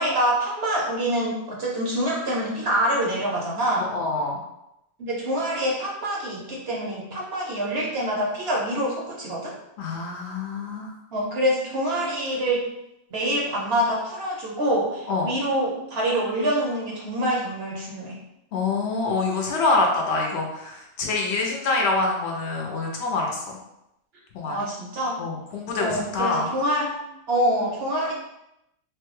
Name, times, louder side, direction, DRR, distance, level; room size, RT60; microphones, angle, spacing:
voice 1, 0.0-3.9 5.0-9.5 11.1-12.6 13.1-18.2 24.5-25.2 25.8-27.0 27.3-28.1, right 1 dB, 60° right, -3 dB, 0.8 m, -25 dB
voice 2, 3.8-4.4 9.8-10.9 15.1-15.3 18.5-23.6 24.3-24.6 25.2-26.5, left 3 dB, 65° left, 0 dB, 0.8 m, -26 dB
3.2 x 2.2 x 3.1 m, 0.86 s
omnidirectional pair, 1.4 m